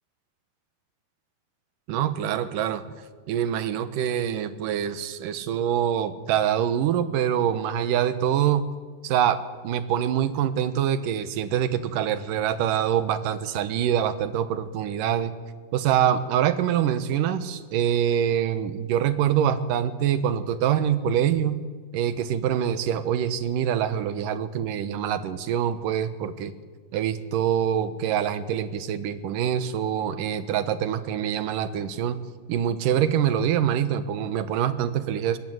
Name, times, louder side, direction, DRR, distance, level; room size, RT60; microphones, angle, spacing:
voice 1, 1.9-2.8 3.3-8.7 9.0-15.3 15.7-21.6 21.9-26.5 26.9-32.2 32.5-35.4, right 9 dB, 75° right, 13 dB, 2.7 m, -25 dB
23.5 x 19.0 x 9.4 m, 1.5 s
omnidirectional pair, 4.0 m